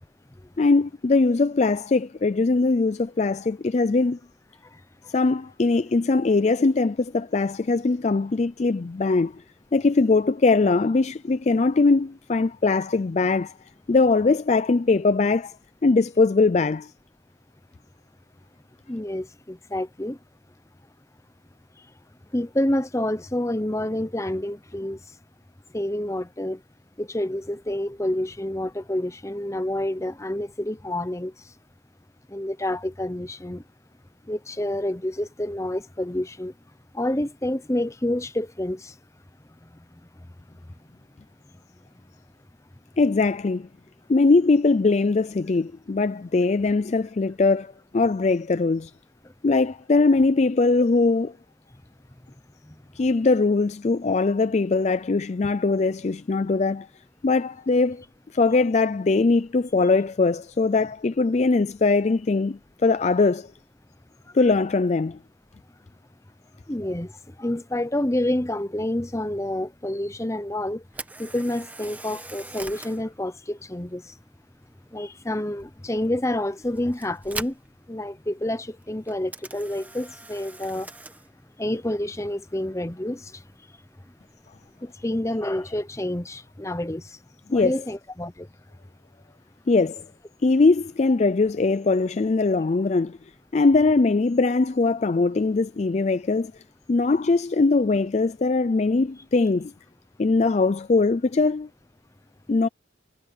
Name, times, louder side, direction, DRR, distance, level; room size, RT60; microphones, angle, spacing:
voice 1, 0.6-4.2 5.1-9.4 9.7-13.5 13.9-15.5 15.8-16.9 43.0-43.7 44.1-48.9 49.4-51.3 53.0-56.9 57.2-58.0 58.3-63.5 64.3-65.2 87.5-87.8 89.7-90.0 90.4-93.2 93.5-96.6 96.9-99.7 100.2-101.7 102.5-102.7, left 3 dB, 35° left, 0.4 m, -21 dB
voice 2, 18.9-20.2 22.3-25.0 25.7-26.6 27.0-31.3 32.3-33.6 34.3-36.5 36.9-38.9 66.7-67.1 67.4-70.8 71.2-74.0 74.9-77.6 77.9-80.9 81.6-83.2 84.8-87.0 87.5-88.5, left 1 dB, 15° left, 0.8 m, -28 dB
Camera, 70.9-84.9, right 2 dB, 10° right, 1.1 m, -44 dB
head